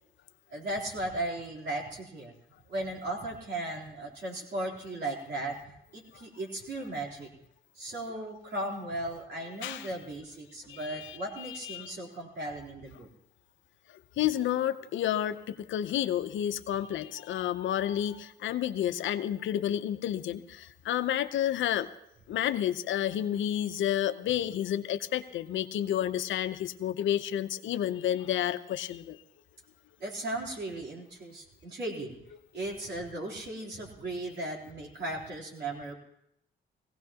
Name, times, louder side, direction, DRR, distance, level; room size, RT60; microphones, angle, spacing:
voice 1, 0.5-2.3 2.7-5.6 5.9-7.3 7.8-13.1 30.0-32.2 32.5-35.9, right 1 dB, 55° right, -2 dB, 3.5 m, -36 dB
voice 2, 9.6-9.9 10.7-12.0 14.2-15.4 15.7-21.9 22.3-29.2, left 11 dB, 75° left, 11 dB, 0.7 m, -30 dB
18.5 x 16.5 x 2.9 m, 0.80 s
cardioid pair, 90°, 20 cm